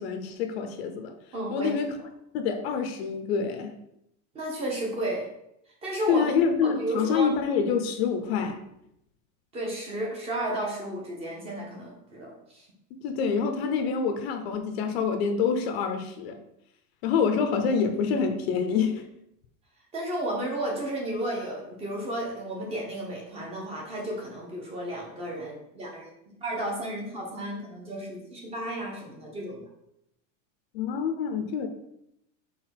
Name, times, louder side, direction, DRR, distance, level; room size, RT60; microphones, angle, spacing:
voice 1, 0.0-1.1 1.5-2.0 2.3-3.8 6.1-8.6 12.9-16.4 17.0-19.1 30.7-31.7, left 6 dB, 50° left, 7 dB, 0.8 m, -26 dB
voice 2, 1.3-1.8 4.3-5.3 5.8-6.3 6.6-7.3 9.5-12.7 19.9-29.7, right 1 dB, 15° right, -1 dB, 0.9 m, -33 dB
4.7 x 4.0 x 5.7 m, 0.79 s
supercardioid pair, 180°, 39 cm